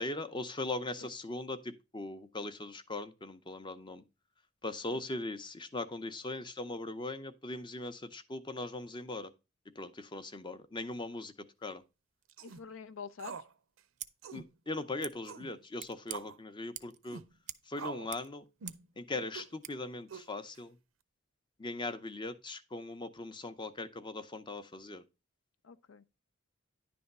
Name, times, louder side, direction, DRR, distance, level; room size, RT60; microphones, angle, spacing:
voice 1, 0.0-4.0 4.6-9.3 9.8-11.3 11.6-11.8 14.3-17.2 17.7-18.4 19.0-20.8 21.6-25.0, left 2 dB, 25° left, 0.6 m, -40 dB
sound 1, 12.3-12.6 13.2-13.5 13.8-13.9 14.2-14.5 15.2-15.5 16.1-16.4 17.0-17.3 17.8-18.1 18.6-18.9 19.3-19.5 20.1-20.6, right 5 dB, 85° right, 0.6 m, -45 dB
voice 2, 12.4-13.4 19.1-19.3 25.6-26.0, left 6 dB, 75° left, 0.5 m, -47 dB
Scissors, 13.9-14.1 15.0-15.1 15.8-16.2 16.7-17.0 17.4-17.7 17.9-18.9 19.6-19.7, right 12 dB, 35° right, 0.4 m, -45 dB
10.5 x 3.5 x 5.3 m
head